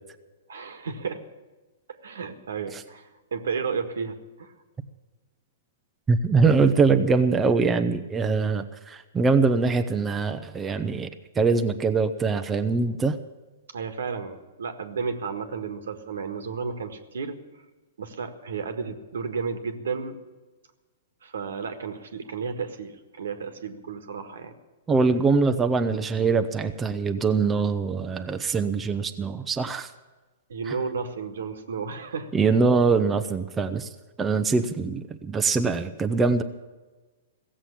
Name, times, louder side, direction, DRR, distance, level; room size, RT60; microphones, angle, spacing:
voice 1, 0.5-1.2 1.9-4.5 13.7-17.4 18.0-20.2 21.2-24.5 30.5-32.3, right 5 dB, 85° right, 8 dB, 1.6 m, -33 dB
voice 2, 6.1-13.2 24.9-29.9 30.7-30.8 32.3-33.9 34.2-36.4, right 4 dB, 15° right, 7 dB, 0.7 m, -23 dB
16.0 x 7.5 x 10.0 m, 1.2 s
hypercardioid pair, 140°, 0 cm